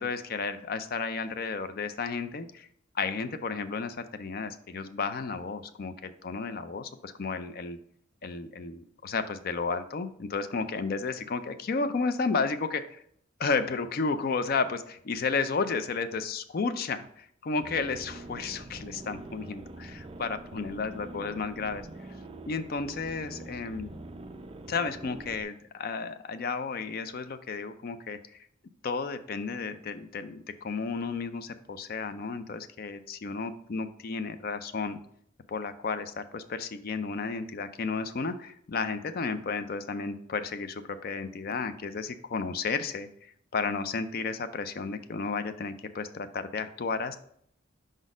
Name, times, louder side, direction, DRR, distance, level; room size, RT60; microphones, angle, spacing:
voice 1, 0.0-2.7 2.9-7.8 8.2-13.0 13.4-21.9 22.4-23.9 24.7-28.4 28.8-35.0 35.5-43.1 43.5-47.2, left 4 dB, 45° left, 11 dB, 0.4 m, -32 dB
sound 1, 17.6-25.4, right 2 dB, 25° right, 0.4 m, -44 dB
5.1 x 4.1 x 5.0 m, 0.67 s
head